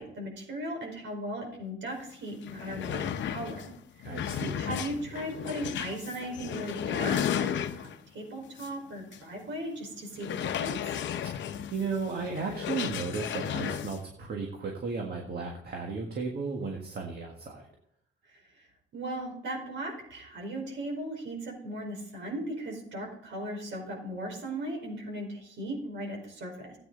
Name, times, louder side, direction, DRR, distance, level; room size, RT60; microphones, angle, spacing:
voice 1, 0.0-3.6 4.1-4.2 4.6-11.0 18.6-18.7 18.9-26.8, right 1 dB, 70° right, 0 dB, 4.9 m, -37 dB
sound 1, 2.0-2.1 2.4-8.1 8.6-8.7 9.1-9.2 10.2-14.0, left 9 dB, 65° left, 0.8 m, -34 dB
voice 2, 4.0-4.7 11.7-17.7, right 4 dB, 55° right, 1 dB, 1.7 m, -34 dB
13.5 x 8.9 x 4.0 m, 0.71 s
cardioid pair, 90°, 20 cm